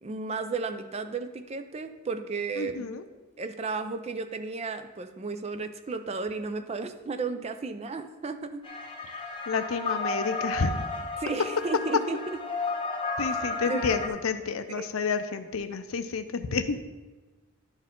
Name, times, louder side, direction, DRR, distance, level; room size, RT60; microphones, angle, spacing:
voice 1, 0.0-2.9 3.4-8.6 11.2-12.4 13.6-13.9 14.7-14.9, right 4 dB, 30° right, 8 dB, 0.4 m, -33 dB
voice 2, 2.6-3.1 9.1-10.9 13.2-16.8, left 5 dB, 70° left, 10 dB, 0.5 m, -30 dB
sound 1, 8.6-14.1, left 3 dB, 25° left, 0.8 m, -33 dB
11.0 x 4.5 x 3.7 m, 1.2 s
head